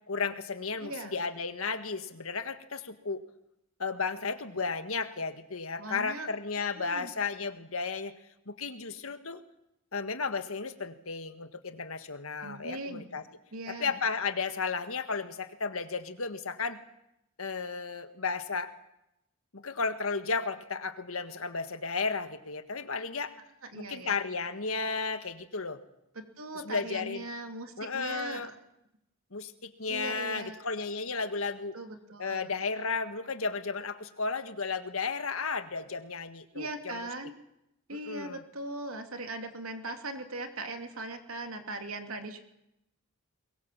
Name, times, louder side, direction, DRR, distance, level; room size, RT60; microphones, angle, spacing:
voice 1, 0.1-3.2 3.8-8.1 8.5-9.4 9.9-13.2 13.8-16.8 17.4-18.7 19.5-23.3 23.7-25.8 26.7-27.3 27.8-28.5 29.3-31.8 32.2-37.0 37.9-38.4, left 4 dB, 75° left, 9 dB, 1.7 m, -34 dB
voice 2, 0.8-1.1 5.8-6.3 6.8-7.1 12.4-13.1 13.5-14.0 23.7-24.1 26.1-28.6 29.9-30.6 31.7-32.5 36.5-37.3 37.9-42.4, right 2 dB, 80° right, 6 dB, 2.8 m, -39 dB
22.5 x 22.0 x 7.5 m, 0.84 s
head